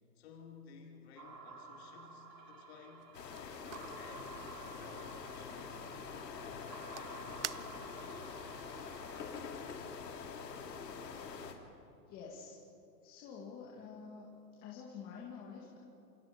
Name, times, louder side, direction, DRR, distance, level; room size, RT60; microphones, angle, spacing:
voice 1, 0.2-3.1 3.4-3.6 3.9-5.8 6.4-7.8, left 6 dB, 40° left, 0 dB, 4.2 m, -56 dB
sound 1, 1.2-9.6, right 3 dB, 85° right, 4.7 m, -53 dB
sound 2, 3.0-8.2, right 11 dB, 45° right, 0.5 m, -50 dB
sound 3, 3.1-11.5, left 5 dB, 75° left, 3.1 m, -45 dB
voice 2, 12.1-12.6 13.0-14.3 14.6-15.8, left 6 dB, 20° left, -3 dB, 2.1 m, -48 dB
27.5 x 25.5 x 5.2 m, 2.7 s
hypercardioid pair, 155°, 49 cm